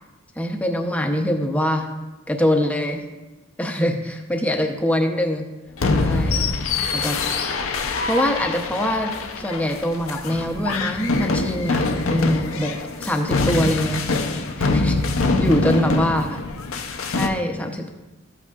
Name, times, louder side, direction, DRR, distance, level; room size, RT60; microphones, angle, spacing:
voice 1, 0.4-1.9 2.3-3.0 3.6-5.5 6.0-6.5 6.9-7.2 8.1-9.1 9.4-14.1 14.6-15.0 15.4-16.4 17.1-18.0, left 1 dB, 5° left, 3 dB, 0.7 m, -23 dB
sound 1, 5.8-17.3, left 3 dB, 70° left, 0.6 m, -24 dB
13.0 x 8.2 x 2.4 m, 1.1 s
head